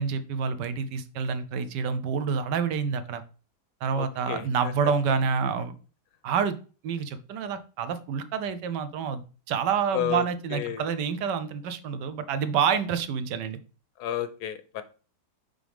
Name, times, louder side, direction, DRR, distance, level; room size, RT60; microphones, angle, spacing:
voice 1, 0.0-3.2 3.8-5.7 6.2-6.6 6.8-13.6, right 6 dB, 80° right, 11 dB, 1.3 m, -28 dB
voice 2, 3.9-4.9 9.9-10.9 14.0-14.8, left 12 dB, 75° left, 11 dB, 1.2 m, -32 dB
5.9 x 4.8 x 3.4 m, 0.36 s
omnidirectional pair, 1.9 m